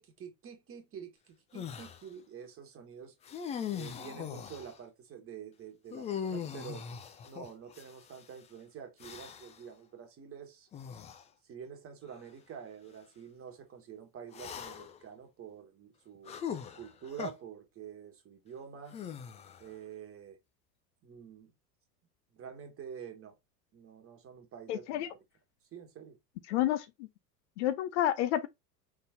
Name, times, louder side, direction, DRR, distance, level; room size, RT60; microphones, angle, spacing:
voice 1, 0.0-3.1 3.7-6.9 7.2-10.7 11.4-16.4 16.7-19.0 19.6-20.4 21.0-21.5 22.3-23.4 23.7-25.2 25.7-26.2, right 7 dB, 25° right, 1.5 m, -47 dB
sound 1, 1.5-2.0 3.2-4.8 5.9-8.2 9.0-9.6 10.7-11.2 12.1-12.2 14.3-15.0 16.3-17.3 18.9-19.7, left 8 dB, 15° left, 0.5 m, -40 dB
voice 2, 24.7-25.1 26.5-26.9 27.6-28.5, left 12 dB, 45° left, 0.7 m, -29 dB
5.3 x 3.6 x 2.6 m
figure-of-eight pair, 80°, 49 cm